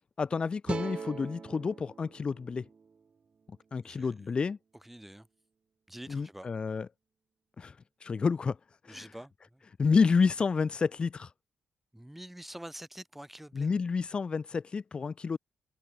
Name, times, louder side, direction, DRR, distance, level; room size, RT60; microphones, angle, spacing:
voice 1, 0.2-2.7 3.7-4.6 6.1-6.9 7.6-7.8 8.0-8.6 8.8-9.1 9.8-11.3 13.5-15.4, left 5 dB, 40° left, 0.5 m, -29 dB
sound 1, 0.7-3.9, right 5 dB, 45° right, 0.3 m, -42 dB
voice 2, 3.8-4.3 4.8-5.3 5.9-6.5 8.9-9.6 11.9-13.7, right 1 dB, 5° right, 3.4 m, -46 dB
supercardioid pair, 55°, 2 cm